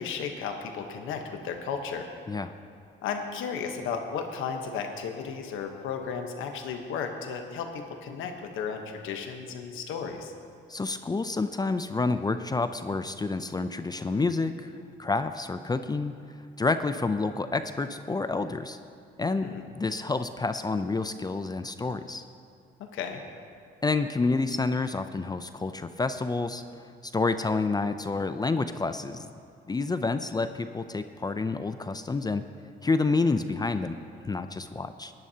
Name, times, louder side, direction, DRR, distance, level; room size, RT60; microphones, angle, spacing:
voice 1, 0.0-2.1 3.0-10.3 19.4-19.6 22.8-23.2, left 6 dB, 90° left, 4 dB, 1.1 m, -34 dB
voice 2, 10.7-14.5 15.0-16.1 16.6-18.8 19.2-22.2 23.8-26.6 27.0-29.3 29.7-32.4 32.8-35.1, left 3 dB, 20° left, 10 dB, 0.4 m, -29 dB
19.5 x 10.5 x 2.9 m, 2.3 s
cardioid pair, 90°, 20 cm